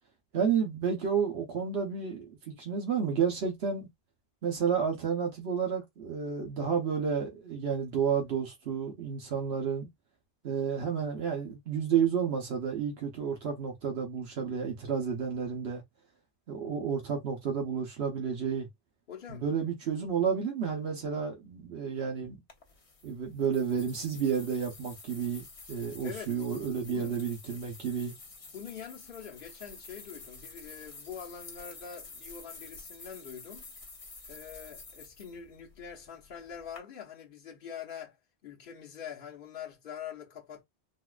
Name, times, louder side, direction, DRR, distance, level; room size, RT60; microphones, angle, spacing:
voice 1, 0.3-3.9 4.4-9.9 10.4-15.8 16.5-18.7 19.3-22.4 23.0-28.1, right 7 dB, 85° right, 1.1 m, -31 dB
voice 2, 19.1-19.5 26.0-26.4 26.8-27.2 28.5-33.7 34.3-38.2 38.4-40.6, left 8 dB, 60° left, 1.1 m, -44 dB
sound 1, 22.5-36.8, left 3 dB, 35° left, 0.8 m, -50 dB
4.0 x 2.3 x 2.3 m
omnidirectional pair, 1.0 m